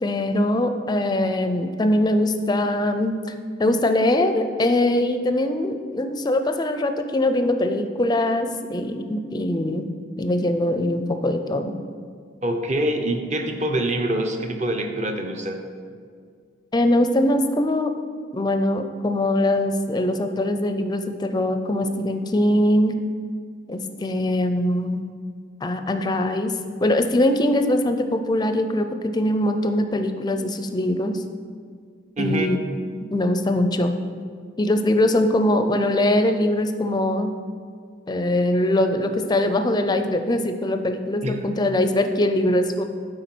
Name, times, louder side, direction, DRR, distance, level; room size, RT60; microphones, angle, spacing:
voice 1, 0.0-3.2 3.6-9.9 10.2-11.7 16.7-17.9 18.3-22.9 23.7-25.0 25.6-26.5 26.8-28.9 29.1-31.2 32.2-34.0 34.6-37.3 38.1-42.8, left 1 dB, 20° left, 7 dB, 0.4 m, -22 dB
voice 2, 12.4-15.6 32.2-32.5 41.2-41.5, right 1 dB, 35° right, 4 dB, 0.7 m, -25 dB
9.1 x 3.8 x 6.0 m, 2.1 s
head